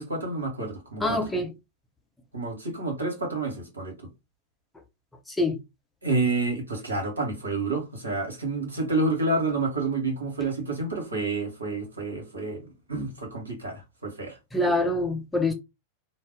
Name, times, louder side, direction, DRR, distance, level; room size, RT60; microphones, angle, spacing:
voice 1, 0.0-1.2 2.3-3.9 6.0-12.6 12.9-14.4, right 3 dB, 80° right, 1.1 m, -29 dB
voice 2, 1.0-1.5 5.4-5.6 14.5-15.5, left 2 dB, 10° left, 0.7 m, -25 dB
2.6 x 2.1 x 3.6 m
figure-of-eight pair, 90°, 0 cm